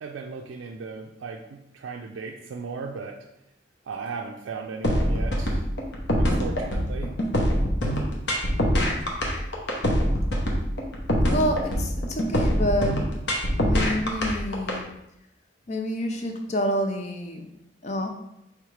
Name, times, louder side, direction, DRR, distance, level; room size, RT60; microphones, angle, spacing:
voice 1, 0.0-1.4 1.8-3.1 3.9-5.6 6.2-7.1, right 4 dB, 75° right, 1 dB, 0.4 m, -36 dB
sound 1, 4.8-14.8, equal, 60° left, 0.8 m, -24 dB
voice 2, 11.2-13.0 13.5-14.8 15.7-17.5 17.8-18.1, equal, 35° left, 4 dB, 0.5 m, -28 dB
4.9 x 3.3 x 3.2 m, 0.82 s
head